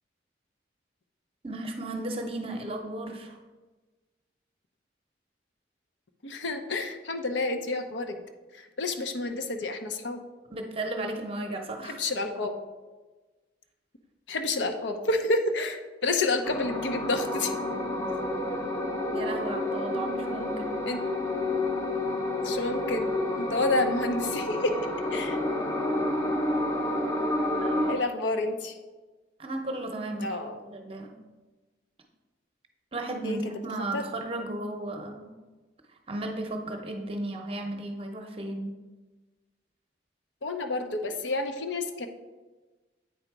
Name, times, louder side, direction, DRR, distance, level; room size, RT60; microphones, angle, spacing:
voice 1, 1.4-3.4 10.5-12.0 19.1-20.9 27.6-28.0 29.4-31.1 32.9-35.3 36.1-38.7, right 1 dB, 30° right, 3 dB, 0.7 m, -35 dB
voice 2, 6.2-8.2 8.5-10.2 11.8-12.5 14.3-17.5 20.8-21.0 22.4-24.8 25.1-25.4 27.9-28.8 30.2-30.6 33.2-33.4 33.9-34.0 40.4-42.1, left 2 dB, 80° left, 6 dB, 0.7 m, -29 dB
sound 1, 16.4-27.9, left 1 dB, 15° left, 0.7 m, -29 dB
8.7 x 3.8 x 4.6 m, 1.2 s
head